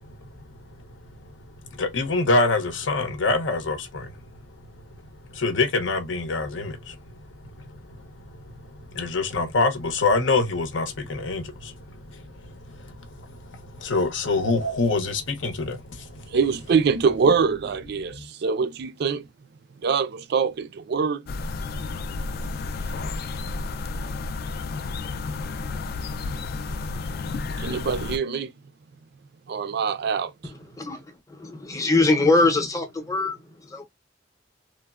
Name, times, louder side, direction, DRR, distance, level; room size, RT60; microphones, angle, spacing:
voice 1, 1.8-4.1 5.3-6.9 8.9-11.7 12.1-12.5 12.8-13.3 13.5-16.2 18.1-18.2, left 3 dB, 80° left, 0.7 m, -25 dB
voice 2, 16.3-19.3 19.8-21.2 27.6-28.5 29.5-30.3, right 5 dB, 60° right, 0.4 m, -24 dB
sound 1, 21.3-28.2, left 3 dB, 55° left, 0.3 m, -31 dB
voice 3, 31.7-33.4 33.7-33.8, left 2 dB, 20° left, 0.6 m, -21 dB
3.1 x 2.0 x 2.3 m
head